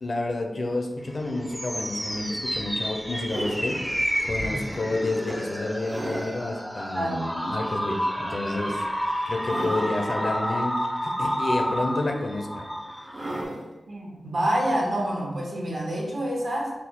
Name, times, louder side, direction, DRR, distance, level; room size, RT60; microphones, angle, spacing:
voice 1, 0.0-3.8 4.2-8.8 9.2-10.7 11.2-12.6 12.9-13.1, left 2 dB, 60° left, 3 dB, 0.5 m, -29 dB
sound 1, 1.1-13.5, equal, ahead, 0.4 m, -30 dB
sound 2, 2.1-2.2 2.8-3.8 4.5-4.7 5.3-6.5 6.9-7.0 8.6-9.0 9.3-10.1 11.3-12.2 13.1-13.7 15.1-15.2, right 1 dB, 50° right, 0.6 m, -37 dB
voice 2, 6.9-7.4 9.5-10.0 13.9-16.7, right 1 dB, 70° right, -3 dB, 1.1 m, -28 dB
4.4 x 2.1 x 3.6 m, 1.1 s
wide cardioid pair, 80°, 0 cm